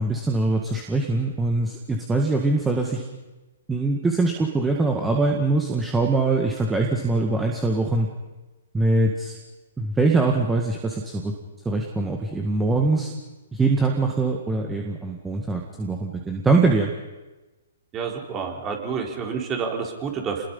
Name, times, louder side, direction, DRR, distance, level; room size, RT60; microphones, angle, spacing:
voice 1, 0.0-3.0 3.7-8.1 8.7-9.4 9.8-11.3 11.7-13.1 13.5-16.9, right 3 dB, 10° right, 1 dB, 1.9 m, -23 dB
voice 2, 17.9-20.5, right 6 dB, 25° right, 2 dB, 3.9 m, -29 dB
28.0 x 20.5 x 5.6 m, 1.1 s
figure-of-eight pair, 120°, 0 cm